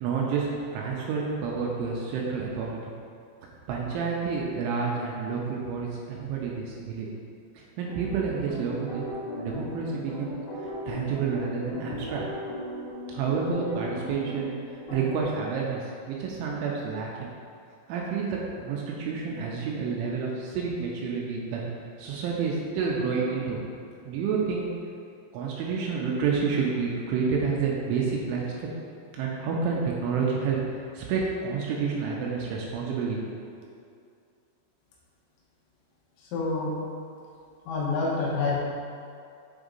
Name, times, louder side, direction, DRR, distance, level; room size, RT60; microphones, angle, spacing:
voice 1, 0.0-2.8 3.7-7.1 7.6-9.0 9.4-12.2 13.1-14.6 14.9-17.3 17.9-21.6 22.0-23.6 24.1-24.7 25.3-28.7 29.2-33.2, right 5 dB, 80° right, -2 dB, 3.0 m, -29 dB
sound 1, 7.8-15.2, left 1 dB, 65° left, 1.6 m, -37 dB
voice 2, 36.3-36.7 37.7-38.6, left 3 dB, 80° left, -5 dB, 3.6 m, -27 dB
8.0 x 3.7 x 5.2 m, 2.4 s
omnidirectional pair, 6.0 m